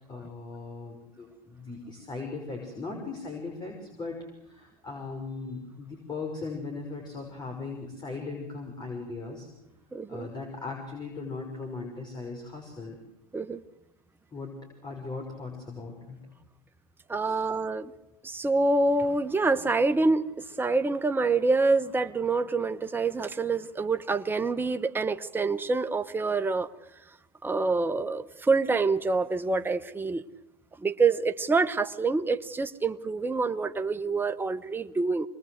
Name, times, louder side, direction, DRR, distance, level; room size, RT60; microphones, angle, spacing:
voice 1, 0.1-9.5 10.1-13.0 14.3-14.5 14.8-16.2 17.2-17.4, left 3 dB, 20° left, 2 dB, 5.9 m, -38 dB
voice 2, 9.9-10.3 13.3-13.6 17.1-17.9 18.2-26.7 27.4-30.2 30.8-35.3, right 3 dB, 10° right, 9 dB, 1.0 m, -26 dB
25.0 x 20.5 x 8.0 m, 0.89 s
hypercardioid pair, 100°, 20 cm